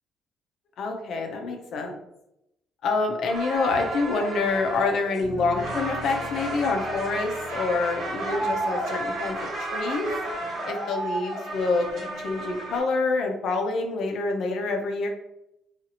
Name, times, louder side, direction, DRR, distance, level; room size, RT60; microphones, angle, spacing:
voice 1, 0.8-2.0 2.8-10.1 10.7-15.1, left 3 dB, 55° left, 3 dB, 0.5 m, -27 dB
sound 1, 3.2-12.8, right 1 dB, 55° right, 1.3 m, -32 dB
Bass guitar, 5.2-9.6, left 3 dB, 25° left, 0.7 m, -43 dB
2.7 x 2.4 x 2.7 m, 0.85 s
cardioid pair, 165°, 0 cm